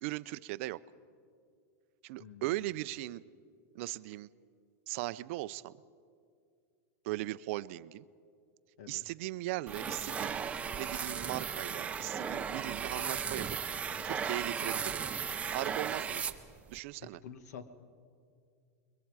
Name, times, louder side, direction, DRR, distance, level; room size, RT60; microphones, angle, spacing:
voice 1, 0.0-0.8 2.0-3.2 3.7-4.3 4.9-5.7 7.0-8.1 8.9-10.4 10.8-13.6 14.0-15.0 15.5-16.3 16.7-17.2, right 18 dB, 50° right, 16 dB, 0.5 m, -38 dB
voice 2, 2.2-2.6 8.8-9.0 17.0-17.7, left 7 dB, 85° left, 11 dB, 1.4 m, -48 dB
sound 1, 9.7-16.8, right 7 dB, 15° right, 0.7 m, -36 dB
29.0 x 22.0 x 4.8 m, 2.3 s
supercardioid pair, 155°, 9 cm